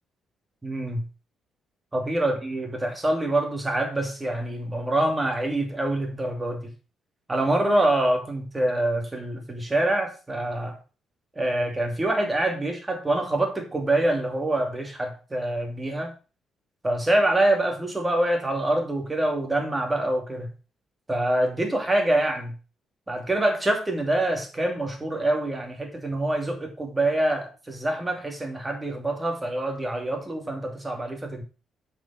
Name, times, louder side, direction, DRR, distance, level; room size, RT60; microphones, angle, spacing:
voice 1, 0.6-1.1 1.9-6.7 7.3-10.8 11.4-16.1 16.8-20.5 21.1-22.5 23.1-31.4, right 1 dB, 20° right, 2.7 m, -25 dB
8.0 x 5.4 x 5.8 m
cardioid pair, 90°, 0 cm